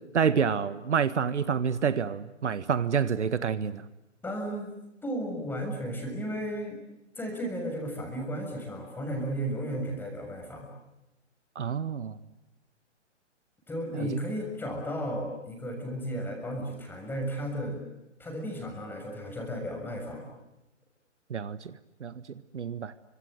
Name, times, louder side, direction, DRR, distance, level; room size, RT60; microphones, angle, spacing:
voice 1, 0.1-3.9 11.5-12.2 13.9-14.1 21.3-21.7 22.0-22.2 22.5-22.9, right 7 dB, 70° right, 14 dB, 1.6 m, -28 dB
voice 2, 4.2-4.7 5.0-6.8 7.2-10.7 13.7-17.8 18.2-20.3, equal, 5° left, 2 dB, 6.6 m, -34 dB
29.5 x 25.5 x 7.8 m, 0.91 s
hypercardioid pair, 145°, 37 cm